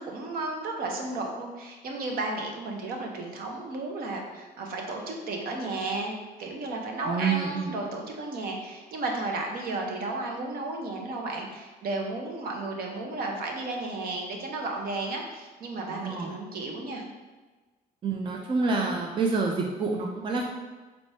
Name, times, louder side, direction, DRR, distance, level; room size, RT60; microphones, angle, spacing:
voice 1, 0.0-17.0, right 2 dB, 60° right, 1 dB, 0.8 m, -33 dB
voice 2, 7.1-7.7 15.9-16.3 18.0-20.5, right 4 dB, 30° right, 0 dB, 0.4 m, -28 dB
4.3 x 3.2 x 2.7 m, 1.3 s
cardioid pair, 110°, 17 cm